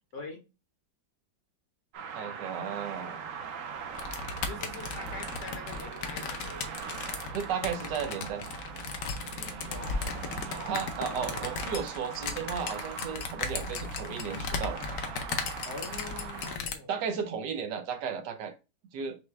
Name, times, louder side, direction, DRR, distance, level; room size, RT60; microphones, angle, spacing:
voice 1, 0.1-0.4 4.4-6.5 9.6-11.7 15.6-16.9, left 2 dB, 55° left, 1.0 m, -44 dB
sound 1, 1.9-16.6, right 7 dB, 65° right, 0.8 m, -41 dB
voice 2, 2.1-3.2 7.3-8.4 10.7-14.8 16.9-18.5 18.9-19.2, right 7 dB, 85° right, 1.3 m, -34 dB
sound 2, 3.9-16.7, left 5 dB, 75° left, 1.3 m, -36 dB
6.0 x 2.2 x 3.2 m
omnidirectional pair, 1.8 m